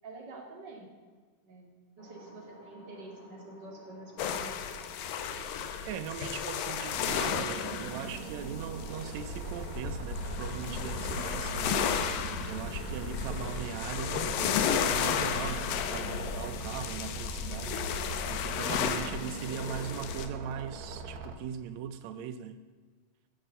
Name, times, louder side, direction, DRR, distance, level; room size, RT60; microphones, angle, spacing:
voice 1, 0.0-0.9 1.4-1.7 2.0-4.6 5.2-5.3, right 2 dB, 35° right, 0 dB, 2.7 m, -47 dB
sound 1, 2.0-21.3, equal, 35° left, 5.1 m, -53 dB
sound 2, 4.2-20.3, left 7 dB, 80° left, 2.6 m, -33 dB
voice 2, 5.8-22.6, right 8 dB, 90° right, 10 dB, 1.5 m, -40 dB
sound 3, 6.9-21.3, right 5 dB, 65° right, 2.0 m, -42 dB
15.5 x 9.4 x 6.9 m, 1.4 s
omnidirectional pair, 4.0 m